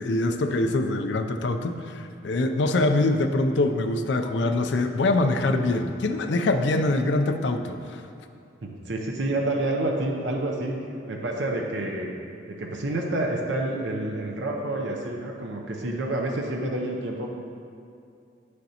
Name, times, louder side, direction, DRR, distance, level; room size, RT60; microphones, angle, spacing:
voice 1, 0.0-8.0, left 2 dB, 70° left, 7 dB, 0.4 m, -24 dB
voice 2, 8.6-10.8 11.1-12.1 12.5-17.3, right 1 dB, 75° right, 0 dB, 0.7 m, -28 dB
9.0 x 6.4 x 2.8 m, 2.5 s
head